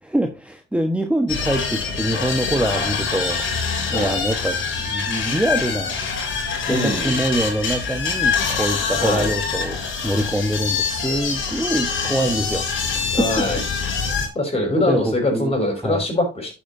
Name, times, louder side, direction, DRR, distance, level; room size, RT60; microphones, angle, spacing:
voice 1, 0.0-3.5 3.9-6.0 6.6-13.6 14.8-16.1, right 1 dB, 5° right, 5 dB, 1.3 m, -24 dB
sound 1, 1.3-14.3, left 5 dB, 70° left, 3.1 m, -25 dB
voice 2, 6.7-7.2 8.9-9.3 13.1-13.6 14.3-16.5, left 1 dB, 30° left, 1 dB, 5.4 m, -23 dB
11.5 x 7.1 x 2.7 m, 0.26 s
cardioid pair, 90°, 20 cm